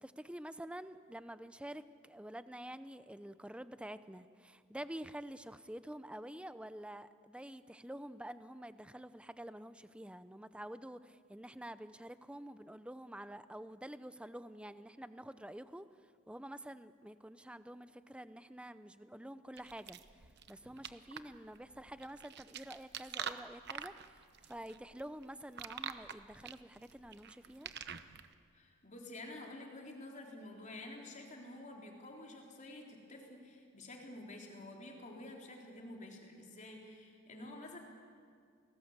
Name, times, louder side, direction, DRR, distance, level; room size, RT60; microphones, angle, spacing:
voice 1, 0.0-15.9 16.3-27.7 37.3-37.5, right 1 dB, 5° right, 13 dB, 0.6 m, -48 dB
sound 1, 19.6-28.3, right 8 dB, 50° right, 1.0 m, -46 dB
voice 2, 28.5-37.8, left 1 dB, 35° left, 0 dB, 3.8 m, -50 dB
29.0 x 19.5 x 8.2 m, 2.2 s
head